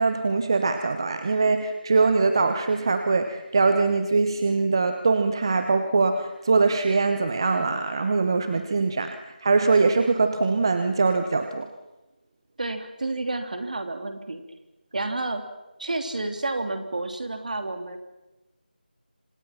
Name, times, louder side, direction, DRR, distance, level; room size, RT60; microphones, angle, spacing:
voice 1, 0.0-11.7, right 4 dB, 25° right, 8 dB, 1.1 m, -22 dB
voice 2, 12.6-14.4 14.9-15.4 15.8-18.0, right 2 dB, 50° right, 7 dB, 3.3 m, -30 dB
27.5 x 27.0 x 6.0 m, 1.0 s
figure-of-eight pair, 175°, 5 cm